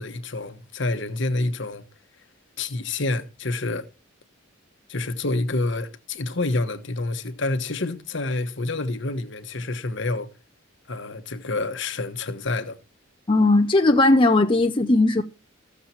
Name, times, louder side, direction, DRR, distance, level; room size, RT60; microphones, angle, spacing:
voice 1, 0.0-1.8 2.6-3.9 4.9-10.3 10.9-12.8, left 2 dB, 60° left, 1.2 m, -28 dB
voice 2, 13.3-15.2, left 2 dB, 25° left, 0.6 m, -18 dB
15.0 x 7.2 x 4.2 m
head